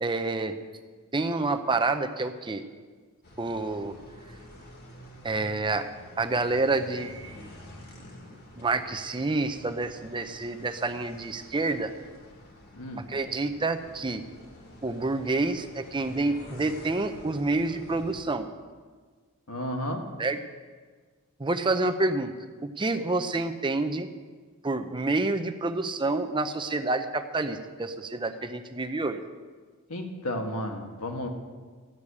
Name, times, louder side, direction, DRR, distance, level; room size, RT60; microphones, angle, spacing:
voice 1, 0.0-0.5 1.1-2.6 3.4-4.0 5.2-5.9 6.2-7.5 8.6-11.9 13.1-14.2 14.8-18.5 20.2-20.4 21.4-22.3 22.8-24.1 24.6-29.2, right 3 dB, 20° right, 8 dB, 0.6 m, -28 dB
sound 1, 3.2-18.2, left 1 dB, 45° left, 1.8 m, -49 dB
voice 2, 19.5-20.1 29.9-31.3, left 1 dB, 85° left, 3 dB, 1.6 m, -33 dB
13.5 x 6.5 x 8.6 m, 1.5 s
head